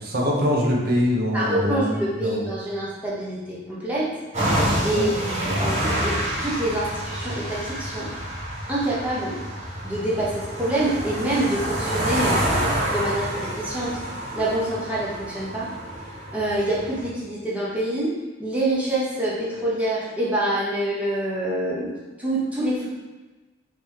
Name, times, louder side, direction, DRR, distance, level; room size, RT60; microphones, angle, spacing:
voice 1, 0.0-2.4 4.9-5.1, equal, 50° right, -2 dB, 0.8 m, -23 dB
voice 2, 1.3-4.1 4.8-8.1 8.7-9.4 9.8-14.0 14.3-15.7 16.3-18.1 18.4-21.9 22.2-22.9, right 1 dB, 10° right, -8 dB, 1.0 m, -26 dB
sound 1, 4.3-17.1, right 1 dB, 35° right, 1.2 m, -28 dB
5.3 x 3.2 x 2.9 m, 1.2 s
head